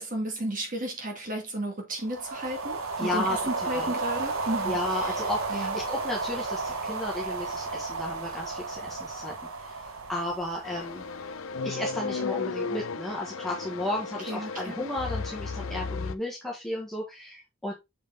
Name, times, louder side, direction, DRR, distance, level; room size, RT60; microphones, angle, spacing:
voice 1, 0.0-5.2 5.5-5.8 14.3-14.9, right 1 dB, 40° right, 2.1 m, -33 dB
sound 1, 2.0-11.5, right 3 dB, 90° right, 1.5 m, -33 dB
voice 2, 3.0-3.9 4.6-9.3 9.6-11.0 11.6-17.7, left 1 dB, ahead, 1.5 m, -34 dB
sound 2, 10.6-16.1, left 4 dB, 70° left, 0.6 m, -34 dB
6.6 x 5.3 x 3.5 m
head